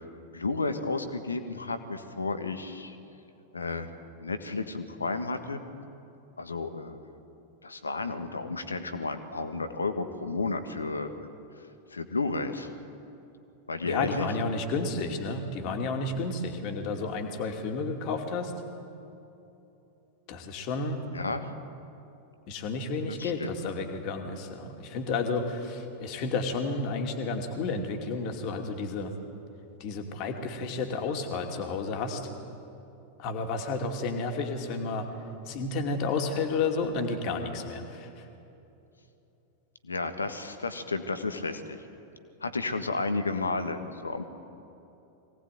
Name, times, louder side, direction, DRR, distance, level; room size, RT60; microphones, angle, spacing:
voice 1, 0.3-3.0 3.5-3.9 4.2-5.6 6.4-7.0 7.6-11.1 11.6-11.7 11.9-12.7 13.7-14.3 21.1-21.5 23.2-23.5 39.8-41.8 42.4-44.3, left 3 dB, 75° left, 9 dB, 1.6 m, -32 dB
voice 2, 13.8-18.5 20.3-21.0 22.5-29.1 29.8-32.2 33.2-35.1 35.5-38.2, left 3 dB, 40° left, 4 dB, 2.6 m, -31 dB
23.5 x 18.5 x 9.3 m, 3.0 s
figure-of-eight pair, 90°, 0 cm